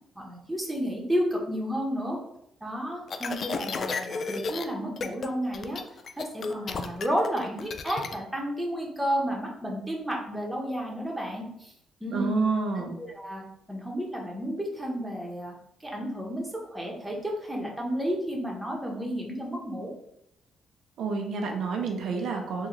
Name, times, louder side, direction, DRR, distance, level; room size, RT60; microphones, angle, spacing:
voice 1, 0.2-2.2 2.6-5.8 6.2-11.7 12.0-12.4 12.8-13.4 13.7-15.5 15.8-19.9, equal, 5° right, -1 dB, 0.9 m, -32 dB
sound 1, 3.1-4.6 5.0-5.3 5.5-8.1, left 4 dB, 50° left, 0.3 m, -32 dB
voice 2, 12.1-12.9 21.0-22.7, right 4 dB, 70° right, 2 dB, 0.5 m, -29 dB
3.6 x 2.3 x 3.1 m, 0.77 s
cardioid pair, 90°, 0 cm